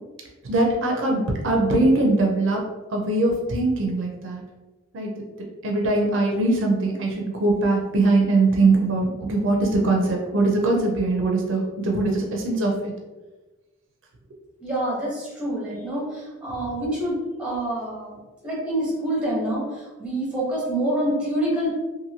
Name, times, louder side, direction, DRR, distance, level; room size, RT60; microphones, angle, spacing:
voice 1, 0.4-2.6 2.9-4.4 4.9-5.2 5.6-12.9, right 2 dB, 60° right, 0 dB, 0.5 m, -21 dB
voice 2, 14.6-18.2 18.4-21.7, right 1 dB, 5° right, -5 dB, 0.8 m, -26 dB
2.7 x 2.5 x 2.7 m, 1.2 s
head